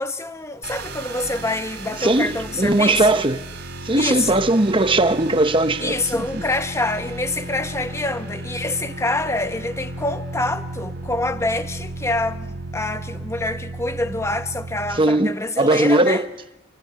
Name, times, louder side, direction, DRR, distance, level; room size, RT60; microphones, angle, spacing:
voice 1, 0.0-3.3 4.0-4.5 5.8-16.2, left 2 dB, 15° left, 1.1 m, -26 dB
sound 1, 0.6-15.0, right 2 dB, 50° right, 3.2 m, -34 dB
voice 2, 2.0-3.5 3.8-6.0 6.3-6.4 14.9-16.3, right 2 dB, 25° right, 1.1 m, -19 dB
28.0 x 18.5 x 9.7 m
head